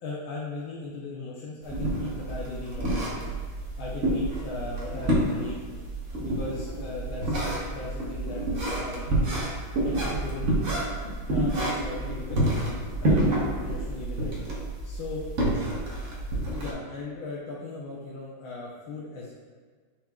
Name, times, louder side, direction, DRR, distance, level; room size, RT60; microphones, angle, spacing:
voice 1, 0.0-3.3 3.8-5.8 6.2-8.4 8.8-9.4 9.8-10.7 11.2-12.7 13.0-14.3 14.8-15.3 16.5-19.3, left 3 dB, 80° left, -5 dB, 1.6 m, -38 dB
sound 1, 1.6-16.7, right 1 dB, 45° right, 1.1 m, -28 dB
9.5 x 4.4 x 2.3 m, 1.5 s
omnidirectional pair, 2.2 m